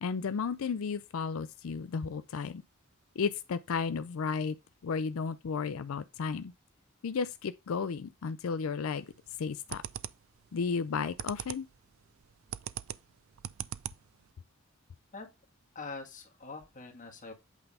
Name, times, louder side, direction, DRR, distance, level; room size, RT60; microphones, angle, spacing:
voice 1, 0.0-2.6 3.2-4.5 4.8-6.5 7.0-9.1 9.4-9.8 10.5-11.7, left 5 dB, 90° left, 0.4 m, -33 dB
sound 1, 9.0-9.3 9.7-10.4 10.8-11.8 12.0-14.3, right 10 dB, 70° right, 0.4 m, -40 dB
voice 2, 15.8-17.3, left 4 dB, 40° left, 1.7 m, -44 dB
8.2 x 3.4 x 5.4 m
head